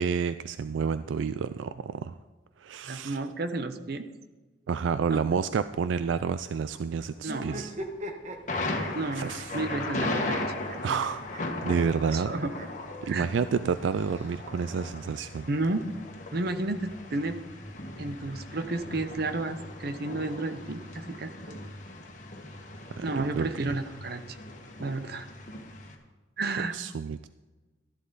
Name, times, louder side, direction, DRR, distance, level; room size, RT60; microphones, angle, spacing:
voice 1, 0.0-2.1 2.6-3.2 4.7-7.7 9.2-9.6 10.8-12.3 13.0-15.5 22.9-23.7 26.7-27.3, right 6 dB, 80° right, 13 dB, 0.3 m, -29 dB
voice 2, 2.9-4.1 5.1-5.4 7.2-7.6 8.9-9.3 9.5-10.4 10.9-11.0 12.1-12.5 13.0-13.3 13.6-13.7 15.5-15.9 16.3-17.4 18.0-21.6 23.0-24.4 24.8-25.3 26.4-26.8, right 2 dB, 55° right, 10 dB, 0.8 m, -32 dB
Subway metro underground, 5.5-19.3, left 1 dB, 10° right, 2.7 m, -55 dB
sound 1, 7.2-9.8 10.1-11.4 11.7-11.8 12.1-12.2 12.5-12.7 13.7-14.7, right 1 dB, 40° right, 1.1 m, -41 dB
Thunder, 8.5-25.9, left 2 dB, 40° left, 1.5 m, -37 dB
13.0 x 11.5 x 3.9 m, 1.3 s
head